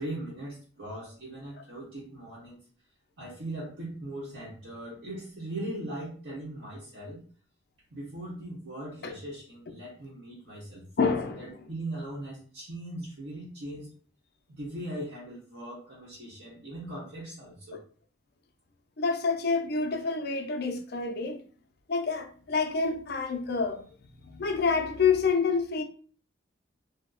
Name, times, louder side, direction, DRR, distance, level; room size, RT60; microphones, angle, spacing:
voice 1, 0.0-2.6 3.2-7.2 7.9-10.8 11.4-13.9 14.5-17.8, right 1 dB, 70° right, 1.1 m, -39 dB
voice 2, 11.0-11.6 17.7-17.8 19.0-21.4 21.9-23.8 24.2-25.8, left 5 dB, 55° left, 0.5 m, -28 dB
2.8 x 2.1 x 3.8 m
head